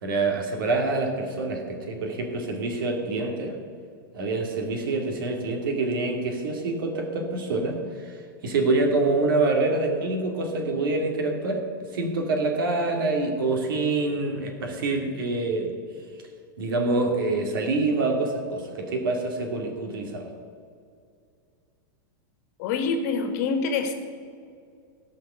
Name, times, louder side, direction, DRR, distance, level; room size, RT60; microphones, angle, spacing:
voice 1, 0.0-3.5 4.1-8.2 8.4-11.6 11.9-15.7 16.6-20.3, right 3 dB, 75° right, 3 dB, 2.5 m, -26 dB
voice 2, 22.6-23.9, left 5 dB, 50° left, 7 dB, 1.6 m, -26 dB
17.0 x 5.8 x 6.9 m, 2.3 s
supercardioid pair, 150°, 11 cm